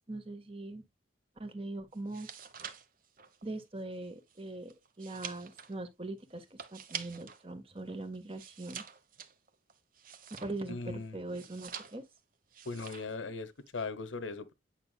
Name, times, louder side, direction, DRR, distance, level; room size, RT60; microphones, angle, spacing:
voice 1, 0.1-0.8 1.4-2.3 3.4-8.8 10.4-12.0, right 2 dB, 30° right, 1.3 m, -41 dB
sound 1, 2.0-7.4 7.8-10.8 11.3-12.2 12.5-13.2 13.5-13.9, right 8 dB, 45° right, 1.0 m, -47 dB
voice 2, 10.7-11.2 12.6-14.5, left 3 dB, 80° left, 1.0 m, -39 dB
9.2 x 5.6 x 2.2 m
head